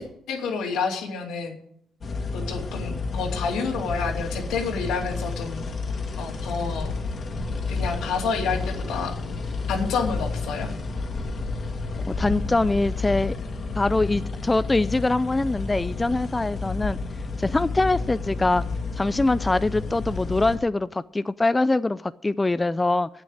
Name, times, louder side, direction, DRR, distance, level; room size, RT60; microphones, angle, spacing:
voice 1, 0.0-1.6 2.3-5.6 6.2-6.9 7.7-9.1 9.7-10.7, left 5 dB, 85° left, 2.7 m, -29 dB
sound 1, 2.0-20.6, left 3 dB, 45° left, 2.1 m, -31 dB
voice 2, 12.1-13.3 13.8-17.0 17.4-18.6 18.9-23.1, left 2 dB, 20° left, 0.4 m, -23 dB
9.1 x 8.2 x 9.5 m
cardioid pair, 90°, 0 cm